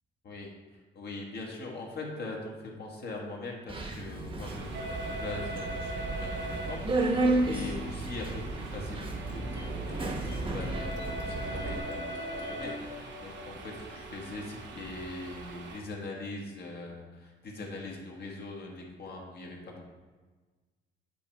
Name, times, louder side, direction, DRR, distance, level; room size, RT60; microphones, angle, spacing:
voice 1, 0.2-19.9, left 2 dB, 55° left, 0 dB, 1.4 m, -42 dB
Subway metro underground, 3.7-11.8, right 2 dB, 25° right, 1.0 m, -33 dB
sound 1, 4.4-15.8, right 2 dB, 65° right, 1.0 m, -41 dB
sound 2, 9.2-14.7, left 3 dB, 70° left, 1.7 m, -46 dB
8.5 x 3.0 x 4.5 m, 1.3 s
cardioid pair, 90°, 20 cm